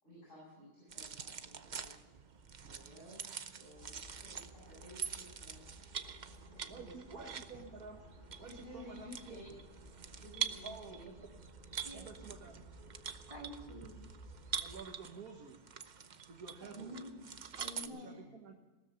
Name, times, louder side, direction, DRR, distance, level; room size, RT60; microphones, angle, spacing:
voice 1, 0.0-2.0 2.6-5.6 6.5-7.3 8.4-9.5 10.1-11.1 17.7-18.3, equal, 50° left, -6 dB, 8.3 m, -54 dB
sound 1, 0.9-17.9, right 7 dB, 45° right, 0.6 m, -45 dB
sound 2, 3.7-14.8, right 1 dB, 35° left, 3.4 m, -57 dB
voice 2, 6.7-8.0 8.4-9.1 10.6-11.3 11.9-12.6 14.6-15.6 16.3-16.9 17.9-18.6, right 4 dB, 65° right, 1 dB, 2.0 m, -50 dB
voice 3, 13.3-14.0 16.6-17.3 17.6-18.2, equal, 20° right, -1 dB, 4.0 m, -48 dB
18.5 x 13.5 x 5.4 m, 1.2 s
omnidirectional pair, 1.7 m